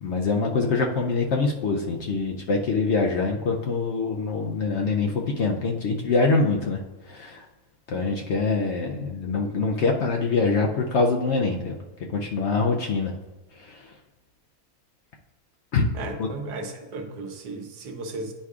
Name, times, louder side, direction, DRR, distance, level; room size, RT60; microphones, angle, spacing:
voice 1, 0.0-6.8 7.1-7.4 7.9-11.8 12.1-13.1 13.7-13.8 15.7-15.9 16.2-16.3, left 4 dB, 65° left, 0 dB, 0.7 m, -24 dB
voice 2, 15.9-18.3, right 2 dB, 90° right, 4 dB, 1.4 m, -35 dB
9.9 x 4.7 x 2.4 m, 1.1 s
omnidirectional pair, 1.6 m